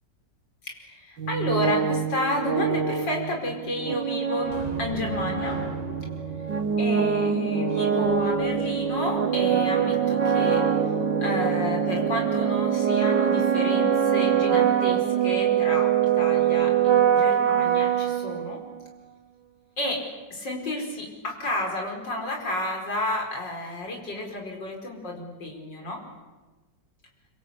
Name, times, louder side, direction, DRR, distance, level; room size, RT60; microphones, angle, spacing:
voice 1, 0.6-5.6 6.8-10.9 11.2-18.6 19.8-20.1 20.3-26.0, left 1 dB, 90° left, 2 dB, 5.6 m, -31 dB
sound 1, 1.2-18.8, right 8 dB, 80° right, 2.0 m, -24 dB
sound 2, 4.4-9.8 17.2-17.3 17.7-17.8, equal, 20° right, 2.9 m, -40 dB
25.5 x 24.5 x 8.3 m, 1.2 s
omnidirectional pair, 1.9 m